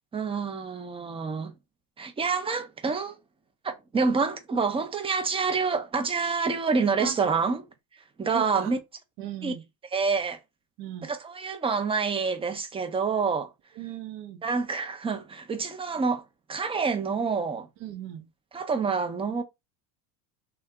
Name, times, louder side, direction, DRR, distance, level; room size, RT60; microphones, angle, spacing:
voice 1, 0.1-1.5 2.0-3.2 3.6-7.7 8.2-8.8 9.4-9.5 9.9-10.4 11.0-13.5 14.4-16.2 16.5-17.7 18.5-19.4, right 5 dB, 15° right, 0.4 m, -27 dB
voice 2, 8.3-8.7 9.2-9.6 10.8-11.1 13.8-14.4 17.8-18.3, right 11 dB, 60° right, 0.7 m, -37 dB
2.8 x 2.3 x 3.4 m
supercardioid pair, 100°, 47 cm